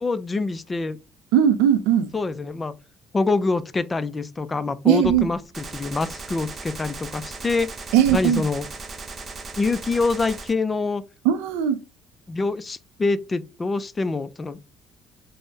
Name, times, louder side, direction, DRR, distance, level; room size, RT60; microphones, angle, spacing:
voice 1, 0.0-1.0 2.1-2.7 3.1-7.7 8.1-8.7 9.6-11.0 12.3-14.7, left 3 dB, 25° left, 0.3 m, -25 dB
voice 2, 1.3-2.1 4.8-5.3 7.9-8.4 11.2-11.8, right 9 dB, 90° right, 0.3 m, -18 dB
Gunshot gunfire, 5.5-10.5, right 3 dB, 35° right, 0.5 m, -37 dB
3.3 x 2.0 x 2.6 m
supercardioid pair, 80°, 0 cm